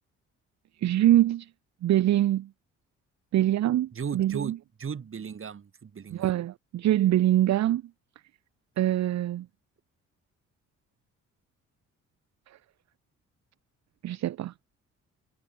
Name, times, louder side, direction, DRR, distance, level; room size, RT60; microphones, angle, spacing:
voice 1, 0.8-1.5 1.8-2.5 3.3-4.6 6.1-7.8 8.8-9.5 14.0-14.5, right 13 dB, 65° right, 0.9 m, -24 dB
voice 2, 3.9-6.4, right 6 dB, 45° right, 5.1 m, -36 dB
cardioid pair, 90°, 30 cm